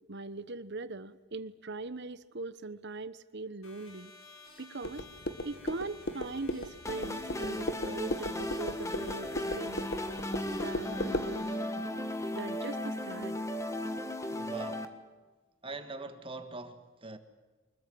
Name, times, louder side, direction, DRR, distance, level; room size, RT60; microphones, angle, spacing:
voice 1, 0.1-4.1 4.6-5.1 5.4-9.8 10.5-11.8 12.3-13.4, right 3 dB, 55° right, 1.1 m, -41 dB
sound 1, 3.6-11.5, left 3 dB, 70° left, 6.0 m, -54 dB
sound 2, 4.8-11.3, left 1 dB, 50° left, 1.5 m, -37 dB
sound 3, 6.9-14.9, left 1 dB, 15° left, 1.5 m, -36 dB
voice 2, 14.3-15.0 15.6-17.2, right 3 dB, 25° right, 1.6 m, -43 dB
24.5 x 22.0 x 7.8 m
head